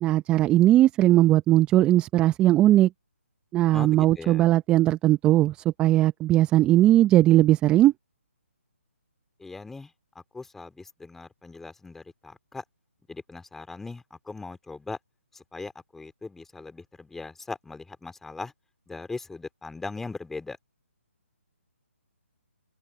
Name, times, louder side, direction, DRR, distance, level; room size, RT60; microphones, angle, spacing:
voice 1, 0.0-2.9 3.5-7.9, right 14 dB, 15° right, 0.9 m, -19 dB
voice 2, 3.7-4.4 9.4-9.9 10.3-12.6 13.1-15.0 15.3-18.5 18.9-20.6, left 3 dB, 5° left, 2.9 m, -39 dB
open air
figure-of-eight pair, 150°, 7 cm